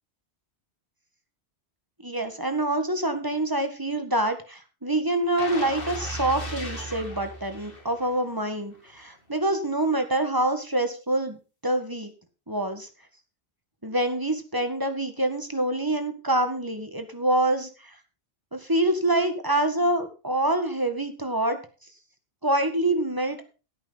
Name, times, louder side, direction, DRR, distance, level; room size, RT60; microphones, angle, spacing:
voice 1, 2.0-12.1 12.5-12.9 13.8-18.0 18.5-21.6 22.4-23.4, right 1 dB, 20° right, 7 dB, 1.7 m, -26 dB
sound 1, 5.4-8.3 8.7-8.9, equal, 55° left, 3.1 m, -36 dB
16.5 x 8.8 x 4.1 m, 0.34 s
omnidirectional pair, 1.1 m